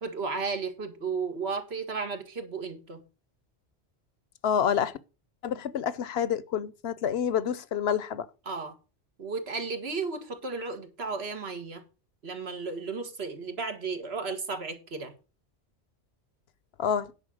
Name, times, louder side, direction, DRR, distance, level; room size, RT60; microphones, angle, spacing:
voice 1, 0.0-3.0 8.5-8.7 9.2-11.8 12.2-15.1, right 4 dB, 70° right, 1.8 m, -34 dB
voice 2, 4.4-5.0 5.4-8.3 16.8-17.1, left 8 dB, 70° left, 1.0 m, -28 dB
9.8 x 5.7 x 6.2 m
omnidirectional pair, 1.1 m